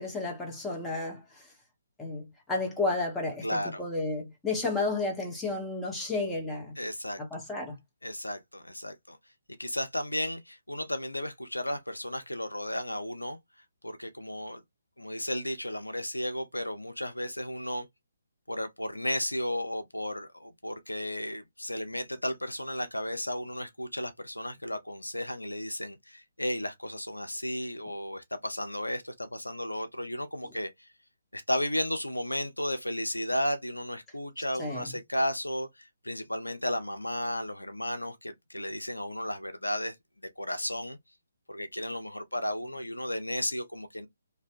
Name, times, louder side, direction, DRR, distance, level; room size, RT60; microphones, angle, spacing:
voice 1, 0.0-1.5 2.0-6.8 7.2-7.7 34.6-34.9, left 3 dB, 5° left, 0.8 m, -32 dB
voice 2, 3.4-3.8 6.8-7.2 8.0-9.2 9.6-13.4 13.8-14.6 15.0-17.9 18.5-30.9 31.3-40.0 40.4-41.0 41.5-44.1, left 1 dB, 85° left, 0.5 m, -34 dB
2.6 x 2.1 x 2.4 m
figure-of-eight pair, 140°, 0 cm